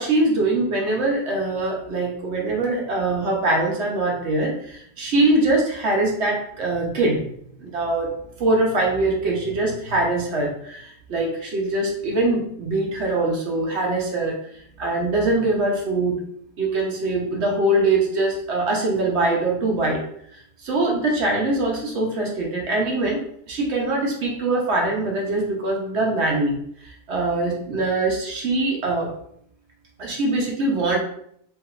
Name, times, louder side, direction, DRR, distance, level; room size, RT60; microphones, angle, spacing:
voice 1, 0.0-7.2 7.6-8.1 8.4-14.4 14.8-16.2 16.6-20.0 20.3-23.2 23.5-26.6 26.8-29.1 30.0-31.0, right 2 dB, 60° right, -2 dB, 0.9 m, -23 dB
3.4 x 2.7 x 2.3 m, 0.69 s
omnidirectional pair, 1.5 m